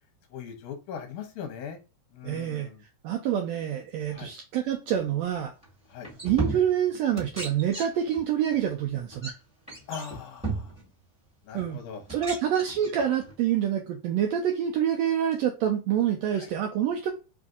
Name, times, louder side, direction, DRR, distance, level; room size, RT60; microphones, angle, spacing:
voice 1, 0.3-1.8 2.1-2.8 4.1-4.3 5.9-6.1 9.9-10.8 11.4-12.0 16.3-16.5, left 7 dB, 80° left, 4 dB, 2.2 m, -40 dB
voice 2, 2.2-2.7 3.0-5.5 6.2-9.3 11.5-11.8 12.1-17.1, right 9 dB, 85° right, 2 dB, 1.5 m, -27 dB
sound 1, 5.6-5.7 6.0-6.9 7.2-8.2 8.5-8.7 9.1-9.3 9.7-10.8 11.6-11.7 12.1-13.3, right 2 dB, 5° right, 1.1 m, -34 dB
4.8 x 2.6 x 2.4 m, 0.31 s
omnidirectional pair, 3.5 m